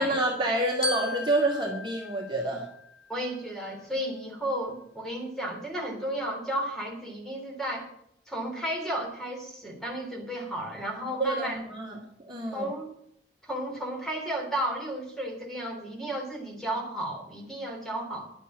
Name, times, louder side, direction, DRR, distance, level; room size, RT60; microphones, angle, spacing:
voice 1, 0.0-2.7 11.2-12.0 12.3-12.7, right 1 dB, 25° right, -2 dB, 2.4 m, -28 dB
Glockenspiel, 0.8-3.3, left 1 dB, 20° left, 1.5 m, -36 dB
voice 2, 3.1-7.9 8.3-11.6 12.5-12.9 13.4-18.3, right 1 dB, ahead, -1 dB, 3.4 m, -33 dB
11.5 x 8.2 x 8.5 m, 0.70 s
head